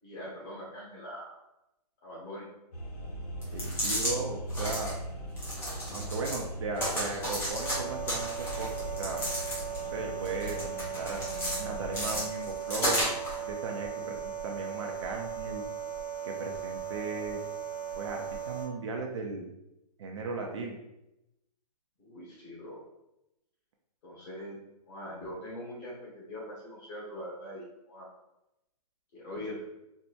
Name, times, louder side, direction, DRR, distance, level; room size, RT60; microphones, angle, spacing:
voice 1, 0.0-1.4 2.0-2.5 22.0-22.8 24.0-24.6 24.9-28.1 29.1-29.6, equal, 30° left, -5 dB, 1.3 m, -42 dB
sound 1, 2.7-12.2, equal, 75° left, 1.2 m, -40 dB
sound 2, 3.4-4.1 4.5-4.9 5.4-6.4 6.8-7.8 8.1-9.8 10.3-11.6 11.9-13.4, equal, 10° left, 0.7 m, -33 dB
voice 2, 3.5-5.0 5.9-8.7 9.0-9.2 9.9-11.2 11.6-13.1 13.4-15.6 16.2-17.4 18.0-19.5 20.0-20.7, right 4 dB, 45° right, 1 dB, 0.5 m, -37 dB
sound 3, 7.5-18.7, right 8 dB, 30° right, 0.8 m, -38 dB
4.3 x 2.2 x 2.6 m, 0.88 s
hypercardioid pair, 160°, 21 cm